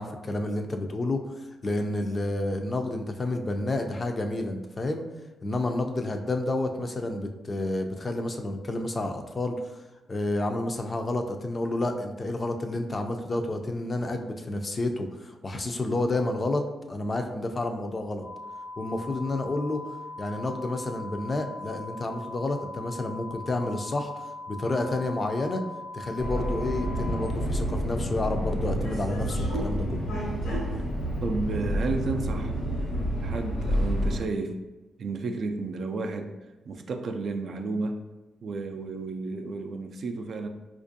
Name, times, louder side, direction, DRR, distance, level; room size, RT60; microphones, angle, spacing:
voice 1, 0.0-5.0 5.4-9.8 10.1-18.3 18.8-25.6 25.9-30.1, left 2 dB, 35° left, 5 dB, 0.4 m, -30 dB
sound 1, 18.2-27.3, left 2 dB, 65° left, 0.8 m, -40 dB
Subway metro underground, 26.2-34.2, equal, 85° left, 1.0 m, -29 dB
voice 2, 31.2-32.5 33.2-34.6 35.0-36.3 36.7-38.0 38.4-40.5, right 3 dB, 60° right, 5 dB, 0.3 m, -32 dB
4.3 x 2.5 x 2.6 m, 1.1 s
cardioid pair, 85°, 0 cm